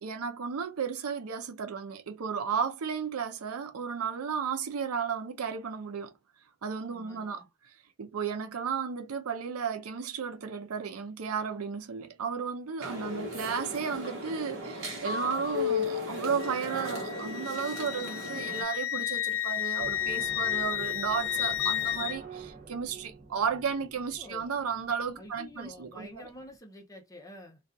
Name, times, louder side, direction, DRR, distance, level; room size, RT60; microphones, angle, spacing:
voice 1, 0.0-6.1 6.6-7.7 8.0-26.3, right 6 dB, 90° right, 0.5 m, -34 dB
voice 2, 6.9-7.5 12.8-13.3 17.9-18.2 24.2-24.5 25.2-27.6, left 1 dB, 15° left, 0.6 m, -49 dB
sound 1, 12.8-18.6, left 3 dB, 60° right, 1.0 m, -35 dB
Wind instrument woodwind instrument, 16.4-22.2, left 12 dB, 70° left, 0.3 m, -32 dB
sound 2, 19.8-26.6, right 4 dB, 35° right, 0.6 m, -48 dB
2.3 x 2.3 x 2.6 m
head